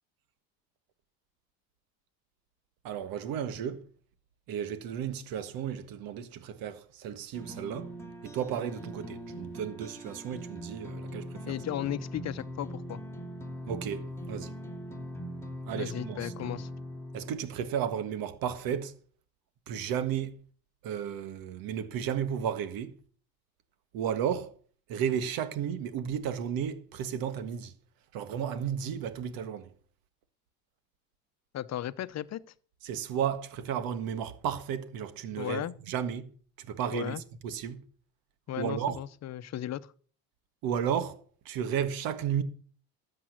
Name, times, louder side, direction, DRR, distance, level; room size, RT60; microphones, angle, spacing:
voice 1, 2.8-3.8 4.5-7.9 8.2-11.4 13.7-14.5 15.7-16.3 17.1-19.0 19.7-20.4 20.8-22.9 23.9-24.5 24.9-27.7 28.1-29.7 32.8-36.3 36.6-37.1 37.4-37.8 38.6-39.0 40.6-42.4, right 8 dB, 75° right, 1.7 m, -33 dB
sound 1, 7.3-17.3, equal, 5° left, 2.5 m, -41 dB
voice 2, 11.4-13.0 15.8-16.7 31.5-32.4 35.4-35.7 36.9-37.2 38.5-39.9, left 11 dB, 45° left, 0.9 m, -35 dB
13.0 x 7.7 x 6.1 m
cardioid pair, 100°, 36 cm